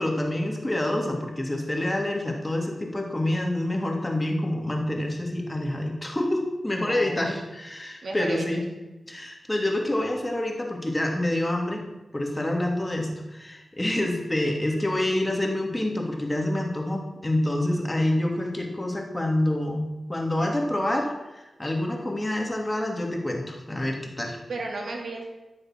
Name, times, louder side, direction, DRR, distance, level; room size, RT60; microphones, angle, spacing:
voice 1, 0.0-8.6 9.1-11.8 12.1-24.4, left 1 dB, 20° left, 1 dB, 2.9 m, -27 dB
voice 2, 6.8-7.4 8.0-8.4 24.5-25.3, right 2 dB, 75° right, 1 dB, 2.5 m, -33 dB
15.0 x 6.5 x 6.1 m, 1.1 s
cardioid pair, 45°, 0 cm